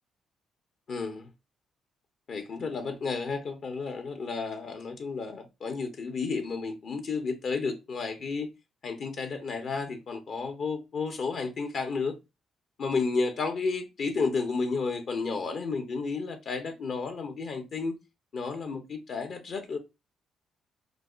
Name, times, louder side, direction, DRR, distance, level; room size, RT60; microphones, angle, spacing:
voice 1, 0.9-1.3 2.3-8.5 8.8-12.1 12.8-17.9 18.3-19.8, left 4 dB, 55° left, 0.6 m, -32 dB
4.9 x 2.1 x 2.3 m
cardioid pair, 90°, 0 cm